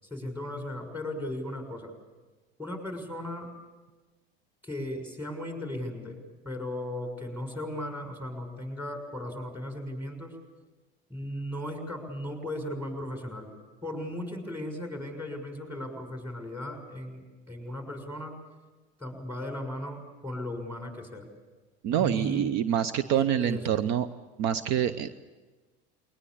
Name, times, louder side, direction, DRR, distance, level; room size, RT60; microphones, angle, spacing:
voice 1, 0.0-1.9 2.6-3.5 4.6-6.2 6.4-10.4 11.1-13.5 13.8-18.4 19.0-21.2 22.0-22.5 23.0-23.6, left 1 dB, 5° right, 4 dB, 6.5 m, -36 dB
voice 2, 21.8-24.1 24.4-25.2, right 10 dB, 55° right, 14 dB, 0.8 m, -26 dB
21.5 x 20.0 x 8.6 m, 1.3 s
hypercardioid pair, 85°, 32 cm